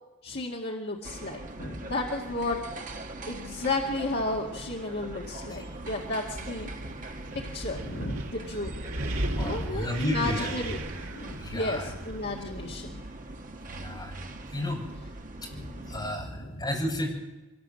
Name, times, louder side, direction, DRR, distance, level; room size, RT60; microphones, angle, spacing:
voice 1, 0.2-2.6 3.3-6.7 7.5-8.7 9.4-10.8 11.1-13.0 15.5-16.7, left 2 dB, 50° left, -2 dB, 2.0 m, -33 dB
sound 1, 1.0-16.1, right 2 dB, 40° right, 1.5 m, -42 dB
Wind, 5.6-12.9, right 1 dB, 80° right, 3.0 m, -37 dB
voice 2, 9.3-10.5 11.4-11.9 13.7-14.1 14.5-14.9 15.4-15.5 15.9-17.1, left 1 dB, 20° left, -1 dB, 6.6 m, -32 dB
24.0 x 19.5 x 7.7 m, 1.1 s
head